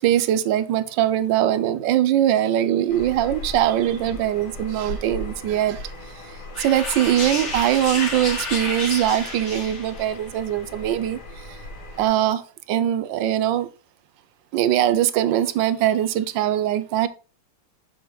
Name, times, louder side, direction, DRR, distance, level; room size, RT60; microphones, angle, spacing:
voice 1, 0.0-5.9 6.6-11.2 11.5-11.6 12.0-12.4 12.7-13.7 14.5-17.1, right 11 dB, 75° right, 1.2 m, -21 dB
sound 1, 2.9-12.1, left 1 dB, 55° left, 1.9 m, -38 dB
sound 2, 6.5-10.1, left 2 dB, 35° left, 2.0 m, -30 dB
6.5 x 6.2 x 3.1 m
omnidirectional pair, 2.2 m